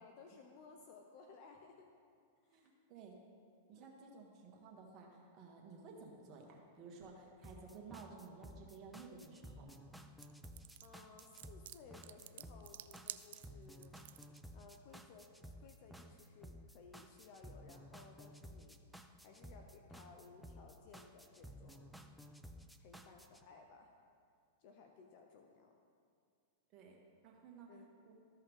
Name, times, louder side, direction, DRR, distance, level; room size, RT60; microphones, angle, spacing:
voice 1, 0.0-1.9 2.4-2.8 3.7-3.9 10.8-14.0 14.5-18.8 19.2-21.9 22.8-23.9 24.6-25.8 27.7-27.9, left 5 dB, 50° left, 3 dB, 0.7 m, -59 dB
voice 2, 2.5-3.1 3.7-9.7 26.7-27.0 27.2-27.7 28.0-28.1, right 4 dB, 40° right, -1 dB, 1.7 m, -55 dB
sound 1, 7.4-23.4, equal, ahead, 0.5 m, -55 dB
sound 2, 10.2-14.4, right 13 dB, 70° right, 0.3 m, -51 dB
14.0 x 5.4 x 3.7 m, 2.3 s
hypercardioid pair, 125°, 0 cm